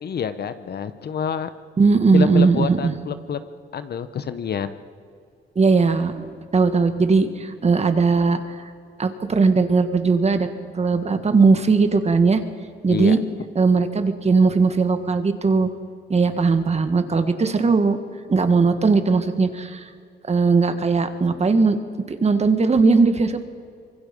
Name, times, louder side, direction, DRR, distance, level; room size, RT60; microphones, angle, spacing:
voice 1, 0.0-1.5 2.1-3.4 3.7-4.7 12.9-13.1, left 7 dB, 55° left, 11 dB, 1.1 m, -27 dB
voice 2, 1.8-2.9 5.6-6.3 6.5-8.6 9.0-10.5 10.7-12.4 12.8-13.2 13.6-15.7 16.1-18.0 18.3-19.9 20.3-21.8 22.1-23.4, right 4 dB, 35° right, 8 dB, 1.8 m, -18 dB
25.0 x 23.0 x 5.4 m, 2.3 s
cardioid pair, 90°, 20 cm